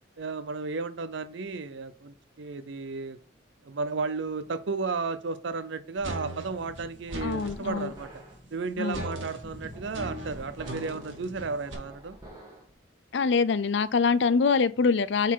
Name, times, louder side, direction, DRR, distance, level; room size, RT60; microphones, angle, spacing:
voice 1, 0.2-3.2 3.6-8.1 8.5-12.2, right 4 dB, 70° right, 0.6 m, -33 dB
sound 1, 6.0-12.7, equal, 20° right, 1.6 m, -48 dB
sound 2, 6.0-7.6 8.9-11.7, right 1 dB, 85° right, 1.9 m, -38 dB
voice 2, 7.2-7.9 8.8-9.0 13.1-15.3, left 5 dB, 65° left, 0.5 m, -24 dB
8.2 x 4.1 x 4.6 m
head